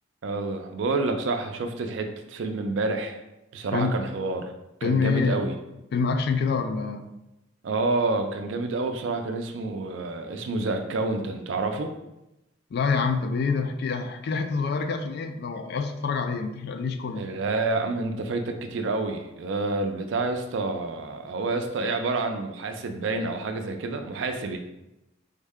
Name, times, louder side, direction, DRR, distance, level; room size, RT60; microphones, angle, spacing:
voice 1, 0.2-3.2 3.5-4.5 4.8-5.5 7.6-11.9 17.1-24.6, right 3 dB, 80° right, 6 dB, 0.4 m, -28 dB
voice 2, 3.7-4.0 4.8-5.4 5.9-7.1 12.7-17.3, left 5 dB, 55° left, 7 dB, 0.3 m, -26 dB
3.4 x 2.1 x 3.5 m, 0.91 s
head